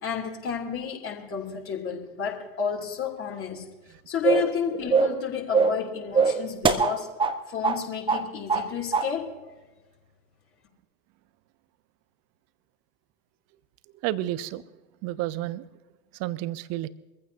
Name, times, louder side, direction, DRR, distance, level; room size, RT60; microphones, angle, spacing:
voice 1, 0.0-3.7 4.1-7.1 7.5-9.4, left 7 dB, 30° left, 3.0 m, -31 dB
sound 1, 4.2-4.5 4.9-5.2 5.5-5.8 6.1-7.4 7.6-7.8 8.1-8.7 8.9-9.1, right 5 dB, 10° right, 1.1 m, -22 dB
voice 2, 14.0-14.6 15.0-15.7 16.1-16.9, right 15 dB, 35° right, 0.8 m, -30 dB
24.0 x 15.0 x 2.8 m
figure-of-eight pair, 80°, 42 cm